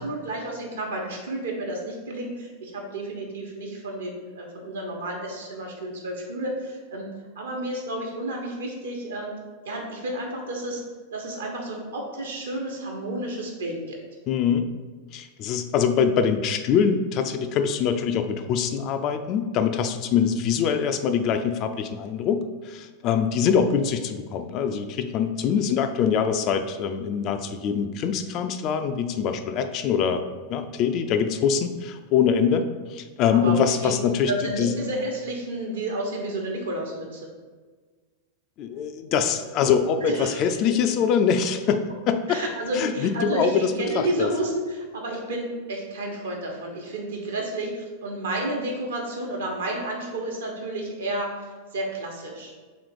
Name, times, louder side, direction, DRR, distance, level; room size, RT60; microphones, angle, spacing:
voice 1, 0.0-7.1 7.3-9.3 9.6-10.8 11.1-14.0 33.3-33.9 34.2-37.2 40.0-40.5 42.3-51.3 51.7-52.5, right 1 dB, 65° right, 0 dB, 1.0 m, -31 dB
voice 2, 14.3-14.7 15.1-30.2 30.5-34.3 34.6-34.8 38.6-42.4 42.7-44.3, left 7 dB, 40° left, 8 dB, 0.3 m, -24 dB
3.6 x 3.1 x 4.8 m, 1.4 s
figure-of-eight pair, 90°, 0 cm